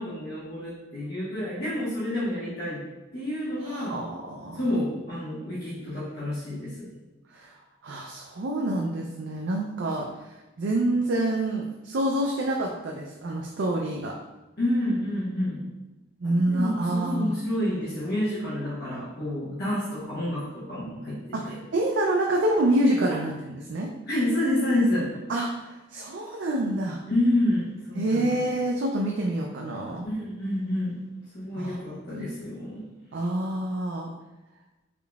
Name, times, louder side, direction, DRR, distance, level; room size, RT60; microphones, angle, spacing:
voice 1, 0.0-2.8 3.1-4.0 4.5-6.9 14.6-15.6 16.2-21.2 21.5-21.6 23.1-23.2 24.1-25.1 27.1-28.4 30.0-31.0 31.3-32.8, left 1 dB, 55° left, -10 dB, 1.0 m, -28 dB
voice 2, 3.6-4.6 7.3-7.5 7.8-10.1 10.6-14.1 16.2-17.3 21.3-23.9 25.3-25.5 25.9-27.0 28.0-30.1 31.6-31.8 32.1-32.3 33.1-34.1, right 1 dB, 65° right, -1 dB, 0.4 m, -27 dB
3.7 x 3.5 x 2.3 m, 1.0 s
head